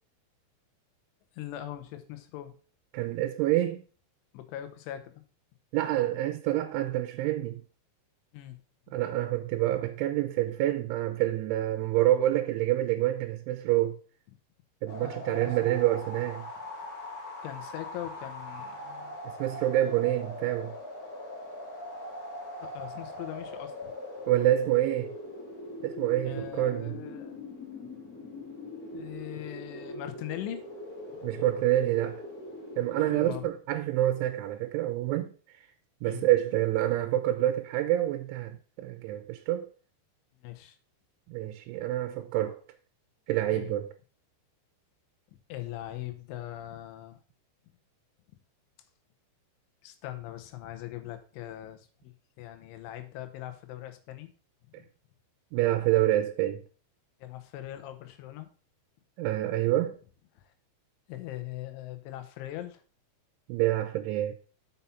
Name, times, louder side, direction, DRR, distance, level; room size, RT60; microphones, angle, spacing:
voice 1, 1.3-2.6 4.3-5.2 8.3-8.6 15.0-15.8 17.4-19.2 22.6-23.9 26.2-27.4 28.9-30.6 31.2-31.4 33.1-33.5 36.0-36.3 40.4-40.8 43.5-43.7 45.5-47.2 49.8-54.3 54.8-54.9 57.2-58.5 60.4-60.5 61.1-62.8, left 13 dB, 85° left, 3.4 m, -41 dB
voice 2, 2.9-3.8 5.7-7.6 8.9-14.0 14.8-16.5 19.2-20.8 24.3-25.1 25.8-27.0 31.2-32.2 32.8-35.3 36.0-39.7 41.3-42.6 43.3-43.9 55.5-56.6 59.2-60.0 63.5-64.3, right 14 dB, 85° right, 3.1 m, -27 dB
sound 1, 14.9-33.4, left 1 dB, 55° left, 0.9 m, -41 dB
7.1 x 5.6 x 5.7 m
omnidirectional pair, 5.4 m